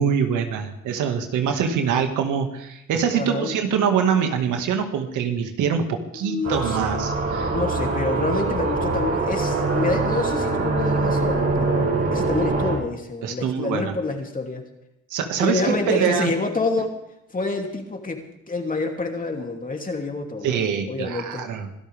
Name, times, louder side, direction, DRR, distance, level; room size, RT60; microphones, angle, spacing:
voice 1, 0.0-7.6 13.2-14.0 15.1-16.3 20.4-21.7, right 7 dB, 85° right, 5 dB, 2.1 m, -24 dB
voice 2, 3.1-3.5 6.2-6.9 7.5-11.8 12.1-14.6 15.4-17.0 17.3-20.6 20.9-21.4, left 3 dB, 30° left, 2 dB, 3.0 m, -27 dB
sound 1, 6.4-12.7, right 3 dB, 50° right, 5.7 m, -23 dB
25.5 x 12.5 x 3.6 m, 0.84 s
cardioid pair, 90°, 30 cm